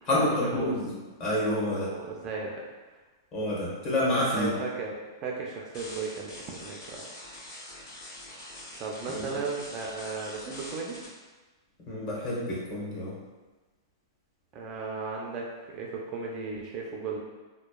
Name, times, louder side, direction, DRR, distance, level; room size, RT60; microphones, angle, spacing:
voice 1, 0.1-1.9 3.3-4.6 9.1-9.4 11.9-13.2, left 1 dB, 35° left, -6 dB, 1.0 m, -28 dB
voice 2, 1.7-2.7 4.4-7.0 8.8-11.0 14.5-17.2, right 4 dB, 35° right, -1 dB, 0.4 m, -35 dB
data proccessing malfunction, 5.7-11.0, left 1 dB, 70° left, 1.0 m, -44 dB
2.8 x 2.2 x 2.3 m, 1.3 s
hypercardioid pair, 125°, 2 cm